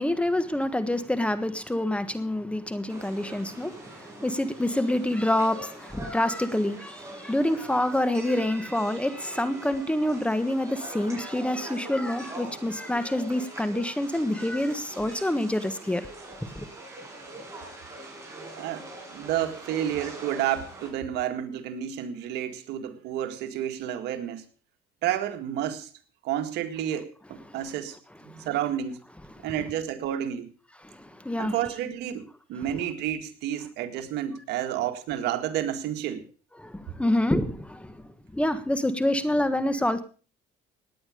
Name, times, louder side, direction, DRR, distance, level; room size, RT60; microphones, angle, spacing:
voice 1, 0.0-16.1 16.5-16.7 27.5-27.6 28.4-28.5 29.4-29.5 30.8-31.5 36.6-38.0 38.3-40.0, left 1 dB, 5° left, 1.4 m, -27 dB
sound 1, 2.9-20.9, right 2 dB, 15° right, 6.6 m, -43 dB
voice 2, 18.4-24.4 25.0-25.9 26.2-28.0 28.2-29.0 29.4-30.5 31.4-36.2, right 11 dB, 85° right, 1.9 m, -30 dB
18.0 x 9.7 x 5.1 m
cardioid pair, 110°, 17 cm